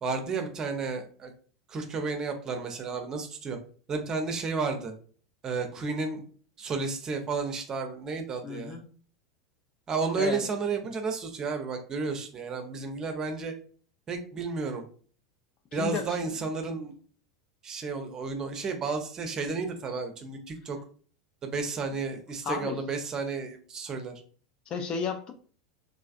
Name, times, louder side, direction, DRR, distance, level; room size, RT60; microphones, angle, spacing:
voice 1, 0.0-1.3 1.7-3.6 3.9-4.9 5.4-6.2 6.6-8.8 9.9-13.5 14.1-14.8 15.7-16.9 17.6-20.8 21.4-24.1, right 4 dB, 25° right, 5 dB, 0.6 m, -32 dB
voice 2, 8.4-8.8 10.1-10.4 15.7-16.2 22.4-22.8 24.7-25.3, left 6 dB, 35° left, 7 dB, 0.4 m, -32 dB
3.3 x 2.5 x 2.4 m, 0.43 s
figure-of-eight pair, 80°, 2 cm